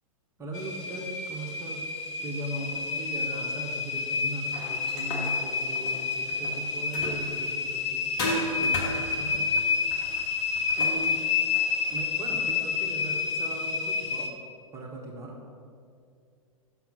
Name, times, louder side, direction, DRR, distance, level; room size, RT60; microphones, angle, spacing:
voice 1, 0.4-1.9 2.2-8.1 8.5-9.5 10.8-11.2 11.9-14.4 14.7-15.4, right 2 dB, 15° right, -1 dB, 0.8 m, -39 dB
sound 1, 0.5-14.3, left 5 dB, 50° left, 0.9 m, -29 dB
sound 2, 4.5-7.5 8.2-12.1, left 1 dB, 35° left, 1.3 m, -36 dB
6.0 x 5.8 x 5.6 m, 2.4 s
figure-of-eight pair, 105°, 18 cm